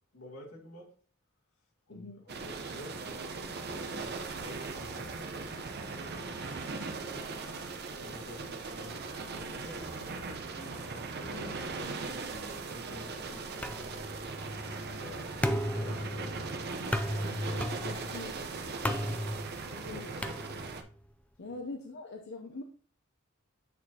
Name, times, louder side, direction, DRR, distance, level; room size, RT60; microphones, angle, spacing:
voice 1, 0.1-0.9 1.9-5.5 6.6-7.0 8.0-13.9 14.8-17.0 17.3-17.9 18.3-19.0 19.5-20.6 21.4-21.6, left 1 dB, 85° left, 2.3 m, -50 dB
voice 2, 1.9-2.2 17.8-18.4 19.8-20.6 21.4-22.6, left 3 dB, 55° left, 0.6 m, -43 dB
sound 1, 2.3-20.8, right 4 dB, 50° right, 0.8 m, -39 dB
sound 2, 13.6-21.0, equal, 5° left, 0.4 m, -36 dB
9.2 x 4.3 x 2.8 m
head